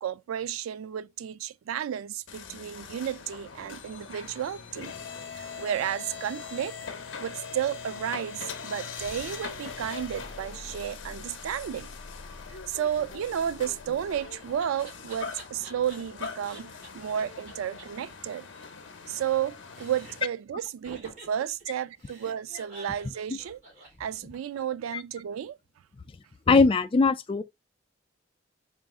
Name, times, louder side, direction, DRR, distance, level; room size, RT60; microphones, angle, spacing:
voice 1, 0.0-4.9 5.3-6.8 7.2-11.9 12.5-18.5 19.1-23.6 24.0-25.6, right 9 dB, 90° right, 0.3 m, -32 dB
sound 1, 2.3-20.3, left 5 dB, 65° left, 0.6 m, -41 dB
Laughter, 14.4-16.9 17.2-17.3 17.5-17.6 17.8-17.9 18.1-19.4 19.7-20.3 20.8-24.6, right 2 dB, 40° right, 2.4 m, -49 dB
voice 2, 26.5-27.4, left 4 dB, 25° left, 0.3 m, -20 dB
3.9 x 2.5 x 3.6 m
head